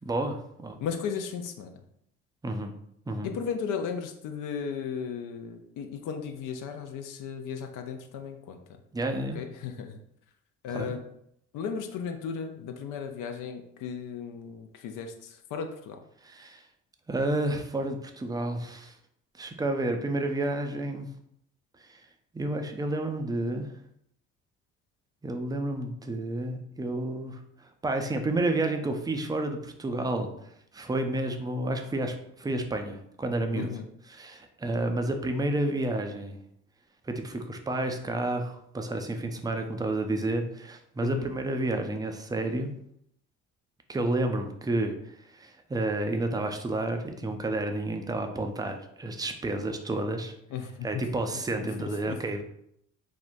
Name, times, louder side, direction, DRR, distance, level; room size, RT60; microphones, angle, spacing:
voice 1, 0.0-0.8 2.4-2.7 3.1-3.3 8.9-9.4 10.7-10.9 16.2-16.6 17.1-18.9 19.4-21.1 21.8-22.0 22.3-23.7 25.2-30.3 30.7-33.7 34.1-36.4 37.0-42.7 43.9-50.4 50.8-52.4, right 2 dB, 10° right, 5 dB, 0.4 m, -30 dB
voice 2, 0.8-1.8 3.2-8.6 9.3-10.0 10.6-11.0 11.5-16.0 33.6-33.9 41.0-41.3 50.5-51.0 51.6-52.2, left 6 dB, 65° left, 5 dB, 0.5 m, -35 dB
3.6 x 2.1 x 2.5 m, 0.74 s
hypercardioid pair, 55°, 35 cm